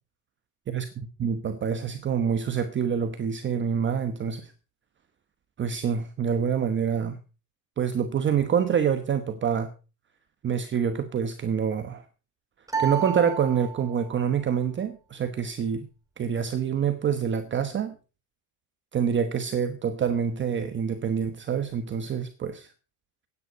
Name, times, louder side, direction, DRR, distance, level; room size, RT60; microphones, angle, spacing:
voice 1, 1.2-4.5 5.6-7.2 7.8-9.7 10.4-12.0 12.8-15.9 16.2-17.9 18.9-22.7, right 7 dB, 25° right, 9 dB, 1.1 m, -26 dB
sound 1, 12.7-14.2, right 6 dB, 5° right, 2.3 m, -31 dB
16.0 x 9.8 x 5.2 m, 0.34 s
cardioid pair, 155°, 48 cm